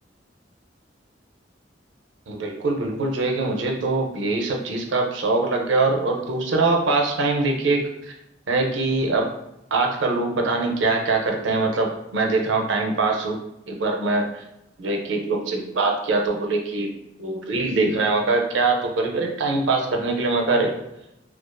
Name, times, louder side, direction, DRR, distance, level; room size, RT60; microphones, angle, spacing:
voice 1, 2.3-8.1 8.5-9.3 9.7-13.4 13.7-14.4 14.8-16.9 17.2-20.7, right 3 dB, 90° right, 2 dB, 0.5 m, -23 dB
2.4 x 2.3 x 2.2 m, 0.86 s
head